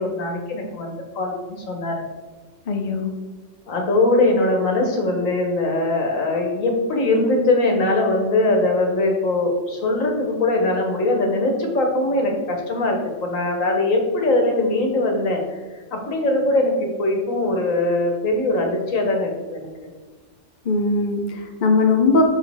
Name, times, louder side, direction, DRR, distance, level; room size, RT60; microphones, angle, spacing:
voice 1, 0.0-2.0 3.7-15.4 15.9-19.9, left 2 dB, 90° left, 2 dB, 1.5 m, -21 dB
voice 2, 2.7-3.1 20.6-22.2, left 3 dB, 40° left, 3 dB, 0.9 m, -19 dB
6.2 x 5.9 x 3.4 m, 1.3 s
omnidirectional pair, 1.3 m